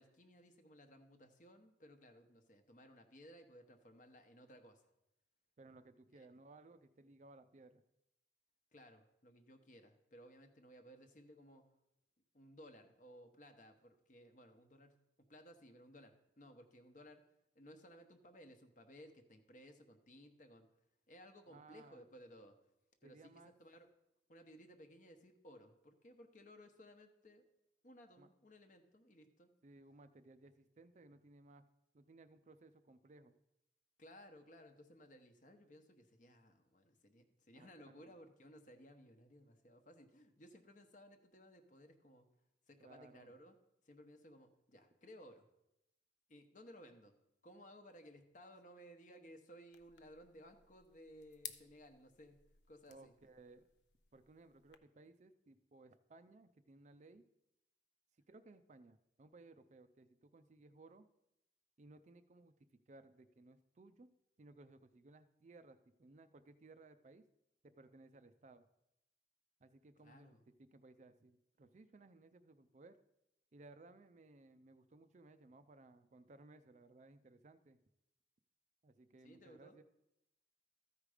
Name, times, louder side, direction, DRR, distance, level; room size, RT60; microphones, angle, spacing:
voice 1, 0.0-4.8 6.1-6.3 8.7-11.6 12.3-17.2 17.5-20.7 21.1-22.5 23.0-23.9 24.3-27.4 27.8-29.5 34.0-42.3 42.7-43.5 43.8-45.5 46.3-47.1 47.4-52.4 52.7-53.1 70.0-70.4 79.2-79.8, equal, 45° left, 6 dB, 0.9 m, -59 dB
voice 2, 5.6-7.8 21.5-22.1 23.0-23.5 28.2-28.3 29.6-31.6 31.9-33.3 37.5-38.1 42.8-43.3 52.9-53.6 54.1-57.2 58.3-61.1 61.8-64.1 64.4-67.3 67.6-68.7 69.6-73.0 73.5-77.8 78.8-79.8, right 2 dB, 40° right, 10 dB, 0.4 m, -61 dB
sound 1, 49.7-54.7, left 11 dB, 70° left, 0.6 m, -57 dB
13.5 x 4.9 x 4.9 m, 0.87 s
head